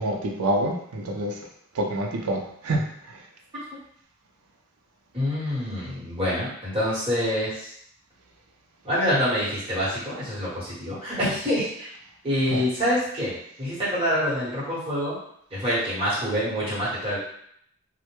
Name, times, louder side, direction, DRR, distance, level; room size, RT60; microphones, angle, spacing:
voice 1, 0.0-1.4 1.7-3.2 12.5-12.6, right 1 dB, 85° right, 1 dB, 0.5 m, -27 dB
voice 2, 5.1-7.7 8.8-11.9 12.2-15.2 15.5-17.2, equal, 25° right, -10 dB, 1.1 m, -26 dB
2.1 x 2.1 x 2.9 m, 0.68 s
head